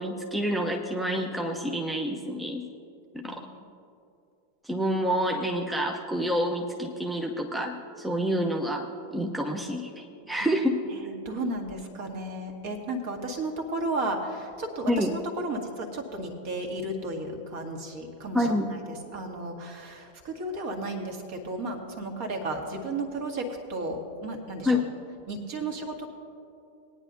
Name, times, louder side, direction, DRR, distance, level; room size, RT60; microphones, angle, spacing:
voice 1, 0.0-2.7 3.1-3.5 4.6-10.8 14.9-15.1 18.3-18.7 24.6-24.8, equal, 5° right, 1 dB, 0.7 m, -28 dB
voice 2, 11.0-18.8 19.1-24.8 25.3-26.1, right 2 dB, 50° right, 3 dB, 1.8 m, -34 dB
20.0 x 9.7 x 2.7 m, 2.6 s
figure-of-eight pair, 90°, 0 cm